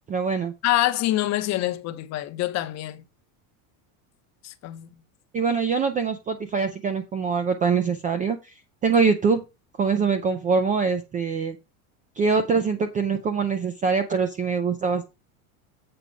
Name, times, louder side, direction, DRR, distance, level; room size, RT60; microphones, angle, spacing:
voice 1, 0.1-0.5 5.3-8.6 8.8-9.4 9.8-11.6 12.2-15.1, right 5 dB, 20° right, 0.4 m, -23 dB
voice 2, 0.6-3.0 4.4-4.9, left 15 dB, 35° left, 0.8 m, -25 dB
7.7 x 4.5 x 5.1 m
supercardioid pair, 150°, 44 cm